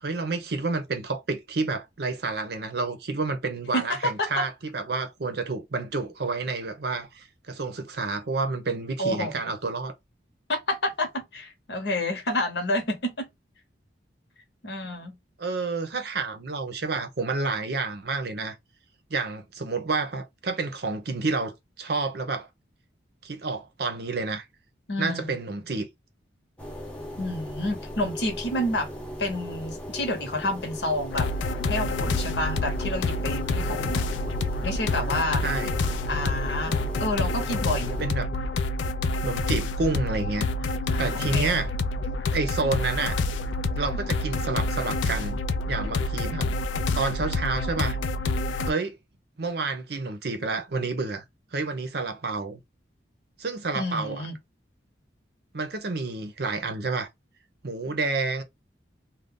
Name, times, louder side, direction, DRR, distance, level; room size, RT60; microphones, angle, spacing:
voice 1, 0.0-9.9 15.4-18.6 19.1-22.5 23.2-24.4 25.0-25.9 35.4-35.7 38.0-38.3 39.2-41.7 42.3-43.2 43.8-45.4 45.7-46.5 46.9-48.0 48.7-49.0 49.4-51.2 51.5-52.6 53.4-54.3 55.5-57.1 57.6-58.4, right 3 dB, 55° right, 0.7 m, -29 dB
voice 2, 3.7-4.4 9.0-9.4 10.5-13.3 14.6-15.1 24.9-25.3 27.2-28.9 29.2-31.3 31.7-34.0 34.6-35.4 36.1-38.0 40.9-41.5 53.7-54.3, left 1 dB, 65° left, 1.0 m, -29 dB
sound 1, 26.6-38.1, equal, 5° left, 0.7 m, -38 dB
sound 2, 31.1-48.7, left 2 dB, 85° left, 0.4 m, -28 dB
2.6 x 2.2 x 3.5 m
head